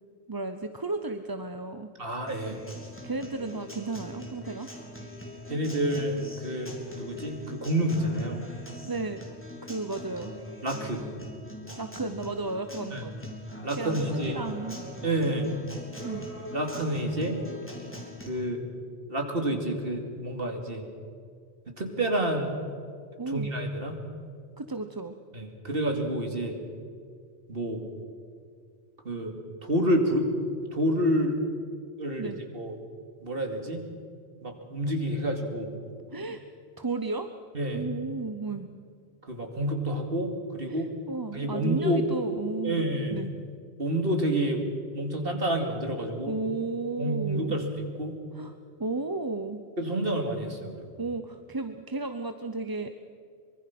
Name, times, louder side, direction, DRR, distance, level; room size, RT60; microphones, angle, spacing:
voice 1, 0.3-1.9 3.0-4.7 8.8-9.2 9.6-10.3 11.8-13.4 13.7-14.8 16.0-16.3 23.2-23.5 24.6-25.2 32.2-32.4 36.1-36.4 36.8-37.3 37.7-38.7 40.7-42.8 43.1-43.3 46.3-47.6 48.3-49.6 51.0-52.9, right 3 dB, 25° right, 8 dB, 0.7 m, -33 dB
voice 2, 2.0-2.6 5.5-8.4 10.6-11.0 12.9-13.0 13.6-14.4 15.0-15.5 16.5-17.4 18.3-18.7 19.1-20.8 21.7-22.5 23.3-24.0 25.3-26.6 27.5-27.8 29.0-29.3 29.6-30.3 30.7-31.4 32.0-32.7 33.2-33.9 34.4-35.7 37.5-37.8 39.3-40.9 41.3-42.0 42.6-43.2 43.8-44.6 44.9-46.3 47.0-48.2 49.8-50.9, right 1 dB, 60° right, 3 dB, 2.9 m, -29 dB
Acoustic guitar, 2.3-18.3, left 1 dB, 10° left, 3.7 m, -42 dB
24.5 x 23.5 x 6.1 m, 2.2 s
omnidirectional pair, 1.1 m